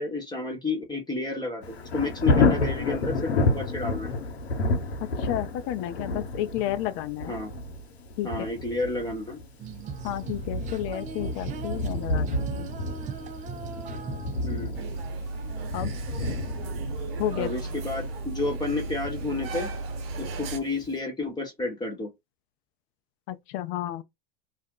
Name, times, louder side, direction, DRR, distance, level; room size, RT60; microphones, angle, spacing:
voice 1, 0.0-4.1 7.3-7.5 8.2-9.4 14.4-14.7 17.4-19.7 20.2-22.1, left 3 dB, 15° left, 0.9 m, -31 dB
Thunder, 1.6-20.4 20.8-20.9, left 2 dB, 85° left, 1.0 m, -30 dB
voice 2, 5.2-7.3 8.2-8.3 10.0-12.7 15.7-15.9 17.2-17.5 23.3-24.0, left 13 dB, 45° left, 0.5 m, -31 dB
Female singing, 9.6-15.1, right 7 dB, 25° right, 0.4 m, -40 dB
sound 1, 14.7-20.6, right 3 dB, 65° right, 0.8 m, -34 dB
2.4 x 2.1 x 3.7 m
hypercardioid pair, 90°, 31 cm